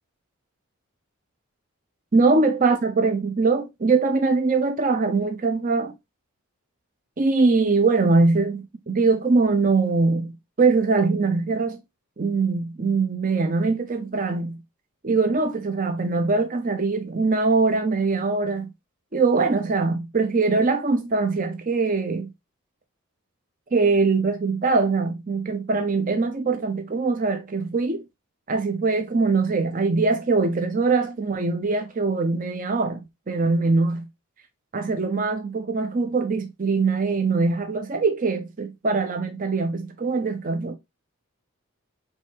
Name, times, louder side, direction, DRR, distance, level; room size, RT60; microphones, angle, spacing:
voice 1, 2.1-5.9 7.2-11.8 12.2-14.6 15.0-18.7 19.1-22.3 23.7-28.0 28.5-34.1 34.7-40.8, right 3 dB, 35° right, 0.6 m, -22 dB
5.0 x 3.3 x 2.8 m
head